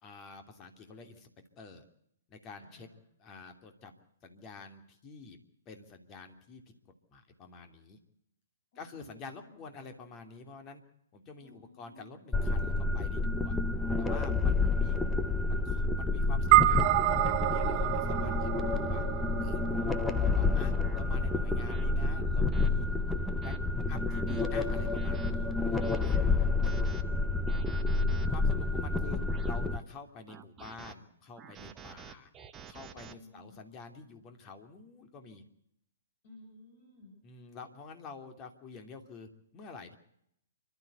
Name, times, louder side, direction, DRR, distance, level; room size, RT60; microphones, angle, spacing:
voice 1, 0.0-1.3 1.6-1.8 2.3-2.9 3.2-3.9 4.2-5.4 5.7-6.6 7.1-8.0 8.7-10.8 11.1-13.6 14.0-15.0 15.5-19.0 19.4-22.9 23.3-23.5 23.9-26.5 28.0-32.3 32.7-35.4 37.2-40.0, left 4 dB, 25° left, 6 dB, 2.9 m, -48 dB
voice 2, 2.6-3.0 8.7-9.6 11.4-12.2 27.4-28.2 33.1-33.6 36.2-37.1, left 1 dB, 45° left, 2 dB, 7.8 m, -57 dB
sound 1, 12.3-29.8, left 3 dB, 5° left, 1.1 m, -29 dB
sound 2, 16.5-21.1, right 17 dB, 35° right, 0.8 m, -28 dB
sound 3, 19.1-19.3 19.9-20.1 20.8-21.0 21.7-21.9 22.5-22.7 23.2-23.6 24.1-24.4 24.9-25.3 25.8-26.2 26.6-27.0 27.5-28.3 28.9-29.6 30.3-30.9 31.4-33.1, right 7 dB, 20° right, 1.2 m, -49 dB
29.5 x 13.0 x 8.2 m, 0.75 s
figure-of-eight pair, 120°, 0 cm